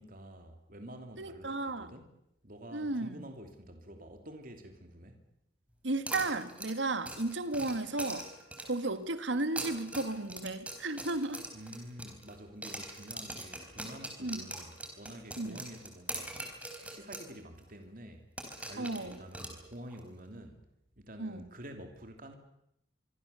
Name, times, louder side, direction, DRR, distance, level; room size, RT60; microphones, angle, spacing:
voice 1, 0.0-2.1 2.4-5.2 11.5-16.4 16.8-18.2 18.7-20.6 21.0-22.4, right 1 dB, 50° right, 2.9 m, -48 dB
voice 2, 1.2-1.9 2.7-3.2 5.8-8.3 8.6-11.4 14.2-14.4 15.4-15.6 18.8-19.2 21.2-21.5, right 2 dB, 80° right, 1.7 m, -34 dB
sound 1, 6.1-8.9 9.4-12.4 12.6-17.3 17.6-17.7 18.4-20.0, right 1 dB, 5° right, 4.3 m, -42 dB
25.0 x 24.5 x 6.9 m
head